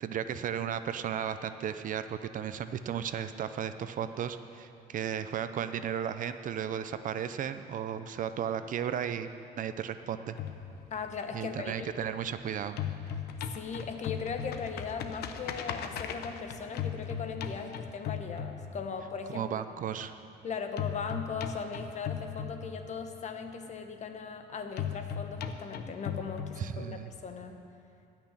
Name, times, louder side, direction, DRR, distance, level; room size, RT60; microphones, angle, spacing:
voice 1, 0.0-9.3 9.6-10.4 11.3-12.8 19.3-20.1 26.6-27.1, right 9 dB, 50° right, 11 dB, 0.6 m, -35 dB
Pianostring steps, 10.3-12.4 12.6-19.1 20.8-23.1 24.8-27.1, left 8 dB, 70° left, 0.9 m, -37 dB
voice 2, 10.9-11.9 13.5-19.6 20.4-27.6, left 5 dB, 45° left, 6 dB, 1.2 m, -38 dB
16.0 x 6.2 x 8.9 m, 2.6 s
cardioid pair, 110°, 17 cm